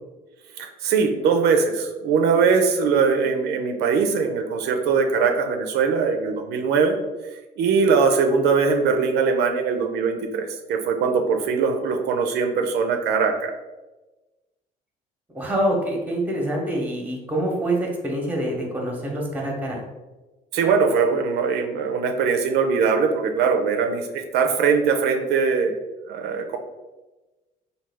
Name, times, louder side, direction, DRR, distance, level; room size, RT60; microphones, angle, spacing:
voice 1, 0.6-7.0 7.6-13.5 20.5-25.7 26.1-26.6, right 5 dB, 75° right, 4 dB, 0.4 m, -21 dB
voice 2, 15.3-19.8, right 1 dB, 10° right, 0 dB, 0.8 m, -25 dB
3.3 x 2.2 x 3.4 m, 1.1 s
cardioid pair, 110°, 17 cm